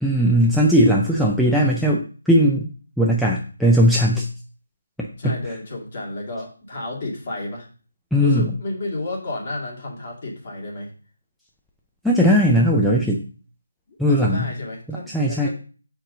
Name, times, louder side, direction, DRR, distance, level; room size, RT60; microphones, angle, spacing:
voice 1, 0.0-2.7 3.0-4.3 5.0-5.4 8.1-8.5 12.0-13.2 14.0-14.4 14.9-15.5, equal, ahead, -4 dB, 0.4 m, -18 dB
voice 2, 5.2-7.7 8.2-10.9 13.9-15.5, left 2 dB, 40° left, -2 dB, 2.3 m, -31 dB
6.6 x 4.6 x 3.8 m, 0.39 s
figure-of-eight pair, 170°, 0 cm